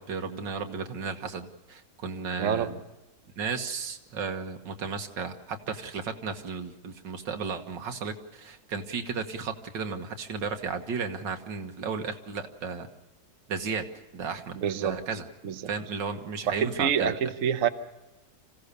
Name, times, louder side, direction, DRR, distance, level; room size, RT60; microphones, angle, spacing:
voice 1, 0.0-2.8 3.4-12.9 13.5-13.9 14.1-15.3 15.7-17.1, right 5 dB, 85° right, 6 dB, 2.2 m, -34 dB
voice 2, 2.4-2.7 14.5-15.0 15.4-15.6 16.5-17.7, right 8 dB, 50° right, 8 dB, 1.3 m, -26 dB
26.5 x 16.0 x 6.8 m, 1.1 s
omnidirectional pair, 1.9 m